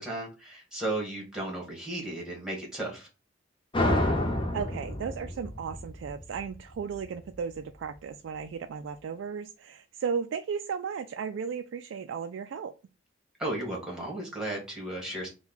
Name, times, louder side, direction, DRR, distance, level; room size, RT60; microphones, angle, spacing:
voice 1, 0.0-3.1 13.4-15.3, right 1 dB, 5° right, -2 dB, 1.5 m, -34 dB
sound 1, 3.7-7.0, left 1 dB, 25° left, 0.7 m, -29 dB
voice 2, 4.5-12.7, right 6 dB, 75° right, 7 dB, 0.3 m, -35 dB
4.3 x 2.2 x 3.9 m, 0.31 s
head